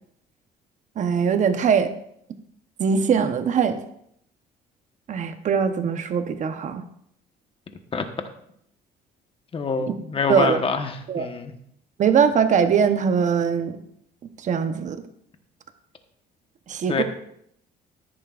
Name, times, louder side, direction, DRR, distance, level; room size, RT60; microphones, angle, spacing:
voice 1, 1.0-1.9 2.8-3.8 5.1-6.8 9.9-10.0 10.3-10.6 11.1-11.3 12.0-13.7 14.4-15.0 16.7-17.0, right 6 dB, 45° right, 9 dB, 1.0 m, -21 dB
voice 2, 9.5-11.5 16.9-17.0, left 4 dB, 30° left, 6 dB, 1.2 m, -26 dB
13.5 x 10.5 x 2.5 m, 0.72 s
cardioid pair, 110°, 17 cm